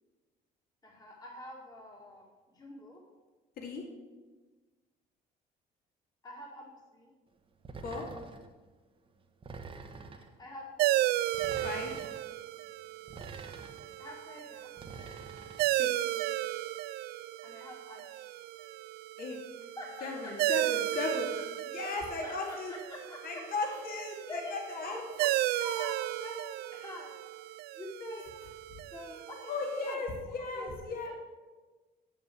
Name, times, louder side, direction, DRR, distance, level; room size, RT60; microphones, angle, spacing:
voice 1, 0.8-2.2 2.5-3.0 6.2-6.7 6.9-7.1 9.9-10.9 14.0-14.7 17.4-18.4 19.8-20.3 20.7-20.8 21.8-21.9 22.2-23.8 24.2-27.1 27.7-28.5 28.9-29.5 29.8-30.0 30.3-31.2, left 1 dB, 20° left, -2 dB, 2.1 m, -46 dB
sound 1, 7.6-8.5 9.4-10.3 11.3-12.2 13.1-14.0 14.8-15.7, right 4 dB, 30° right, 1.1 m, -46 dB
sound 2, 10.8-29.9, right 15 dB, 70° right, 0.4 m, -34 dB
voice 2, 11.6-12.0 15.8-15.9 19.2-19.4 20.0-21.3 21.7-22.7 23.2-25.0 28.7-28.8 29.5-31.1, left 3 dB, 60° left, 1 dB, 2.5 m, -36 dB
7.8 x 7.6 x 8.4 m, 1.3 s
cardioid pair, 110°, 17 cm